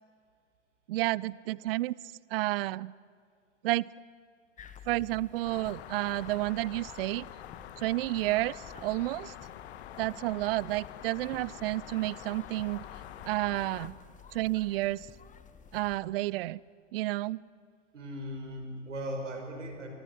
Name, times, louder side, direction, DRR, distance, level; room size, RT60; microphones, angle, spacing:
voice 1, 0.9-2.0 2.3-2.9 3.6-3.9 4.9-7.3 7.8-9.3 10.0-12.8 13.3-14.0 14.3-15.1 15.7-16.6 16.9-17.4, right 18 dB, 50° right, 24 dB, 0.6 m, -31 dB
sound 1, 4.6-16.0, left 7 dB, 20° left, 1.6 m, -52 dB
sound 2, 5.4-13.9, left 11 dB, 55° left, 1.7 m, -46 dB
voice 2, 17.9-19.9, equal, 75° right, 3 dB, 6.0 m, -38 dB
26.5 x 24.5 x 8.2 m, 2.2 s
figure-of-eight pair, 90°, 37 cm